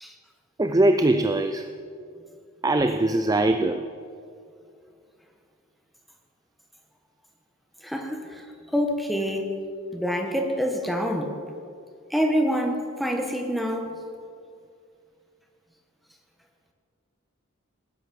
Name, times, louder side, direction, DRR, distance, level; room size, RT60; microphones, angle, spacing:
voice 1, 0.6-1.7 2.6-3.9, right 2 dB, 20° right, 8 dB, 0.5 m, -21 dB
voice 2, 7.8-8.4 8.7-9.5 9.9-11.3 12.1-13.9, equal, ahead, 3 dB, 1.6 m, -26 dB
19.0 x 10.5 x 7.1 m, 2.3 s
head